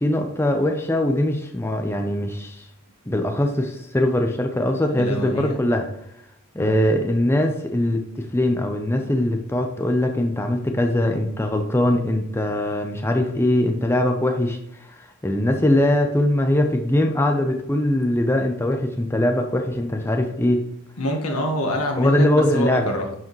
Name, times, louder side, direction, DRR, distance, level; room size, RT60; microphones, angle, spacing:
voice 1, 0.0-2.7 3.1-5.9 6.5-14.6 15.0-20.6 22.0-23.0, left 1 dB, 10° left, 4 dB, 0.6 m, -21 dB
voice 2, 4.9-5.6 6.6-6.8 21.0-23.1, equal, 90° left, 2 dB, 1.5 m, -26 dB
11.0 x 4.9 x 3.1 m, 0.77 s
head